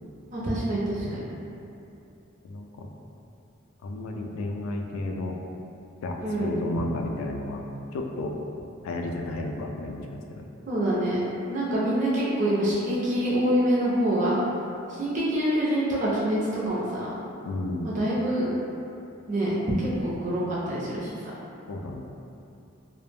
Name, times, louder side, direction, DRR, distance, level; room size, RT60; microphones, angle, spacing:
voice 1, 0.3-1.2 6.2-6.6 10.7-11.2 11.5-14.4 14.9-16.4 16.7-17.1 17.8-18.5 19.3-21.1, right 1 dB, 35° right, -7 dB, 0.4 m, -25 dB
voice 2, 2.4-2.9 3.8-5.4 6.0-7.6 7.9-8.4 8.8-10.4 17.4-17.9 21.7-22.0, left 2 dB, 85° left, 2 dB, 0.3 m, -32 dB
2.3 x 2.0 x 3.2 m, 2.7 s
head